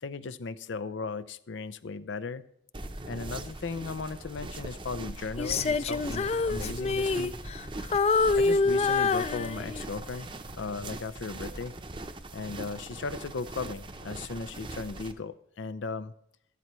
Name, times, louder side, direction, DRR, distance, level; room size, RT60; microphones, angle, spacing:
voice 1, 0.0-2.4 3.1-7.3 8.3-10.3 10.5-11.7 12.3-16.1, left 4 dB, 90° left, 13 dB, 0.5 m, -36 dB
sound 1, 2.7-15.1, right 2 dB, 25° right, 0.6 m, -41 dB
Female singing, 5.4-7.7 7.9-10.0 10.5-10.7, left 4 dB, 35° left, 0.3 m, -26 dB
13.5 x 12.5 x 3.1 m, 0.73 s
head